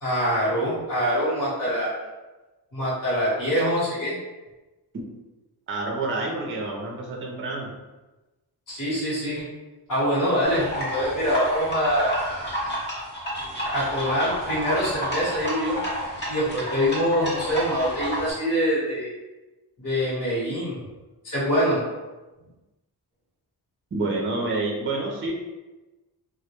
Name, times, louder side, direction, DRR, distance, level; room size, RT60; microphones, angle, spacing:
voice 1, 0.0-2.0 2.7-4.2 8.7-9.4 9.9-12.5 13.7-15.8 16.3-19.1 19.8-20.8 21.2-21.8, equal, 50° left, -9 dB, 1.1 m, -24 dB
voice 2, 5.7-7.7 23.9-25.3, right 2 dB, 30° right, -1 dB, 0.5 m, -28 dB
sound 1, 10.4-18.3, equal, 25° left, 0.8 m, -30 dB
2.1 x 2.1 x 2.9 m, 1.1 s
wide cardioid pair, 115°, 40 cm